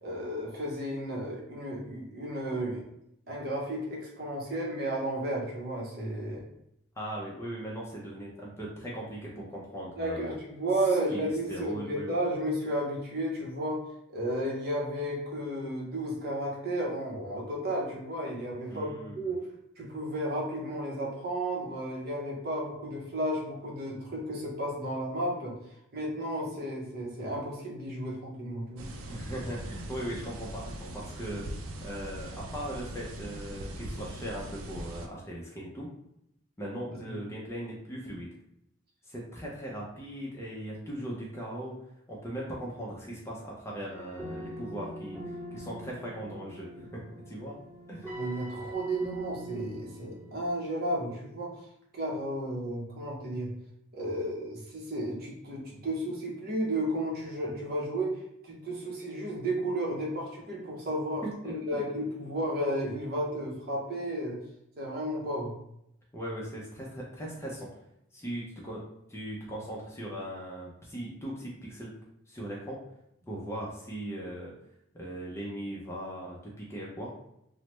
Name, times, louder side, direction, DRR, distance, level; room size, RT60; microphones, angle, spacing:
voice 1, 0.0-2.8 3.3-6.4 10.0-13.8 14.1-19.4 19.8-25.5 25.9-28.9 37.1-37.2 48.1-51.5 51.9-53.5 53.9-64.4 64.8-65.5, right 1 dB, 45° right, -3 dB, 0.7 m, -33 dB
voice 2, 7.0-10.4 10.9-12.2 18.7-19.3 29.1-35.9 36.6-38.3 39.0-41.7 42.1-45.2 45.5-47.0 47.3-47.6 47.9-48.1 61.2-61.8 66.1-67.7 68.1-68.8 69.1-71.9 72.3-72.8 73.3-74.5 74.9-77.1, right 1 dB, 10° left, -4 dB, 0.4 m, -39 dB
sound 1, 28.8-35.1, right 1 dB, 80° right, 0.4 m, -41 dB
sound 2, 43.9-50.5, right 1 dB, 15° right, 1.3 m, -43 dB
3.1 x 2.0 x 3.0 m, 0.80 s
head